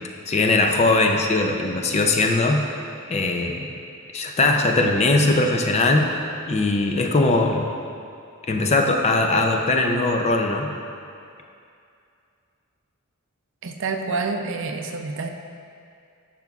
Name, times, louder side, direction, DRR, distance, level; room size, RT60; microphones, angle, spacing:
voice 1, 0.3-2.6 3.1-3.7 4.1-6.1 6.5-7.7 8.5-10.7, left 2 dB, 30° left, 3 dB, 0.4 m, -20 dB
voice 2, 13.6-15.3, right 4 dB, 60° right, 4 dB, 0.5 m, -28 dB
10.5 x 5.9 x 2.4 m, 2.4 s
head